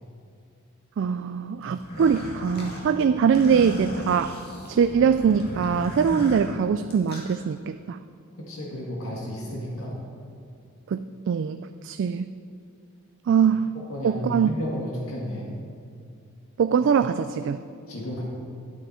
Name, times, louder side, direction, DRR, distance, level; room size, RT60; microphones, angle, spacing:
voice 1, 1.0-4.3 4.7-8.0 10.9-12.3 13.3-13.7 14.0-14.5 16.6-17.6, right 6 dB, 60° right, 10 dB, 0.3 m, -22 dB
sound 1, 1.7-7.4, equal, 50° left, 2.1 m, -37 dB
voice 2, 8.4-10.0 13.9-15.6 17.9-18.2, equal, 90° left, -3 dB, 1.9 m, -32 dB
12.5 x 9.4 x 4.3 m, 2.4 s
head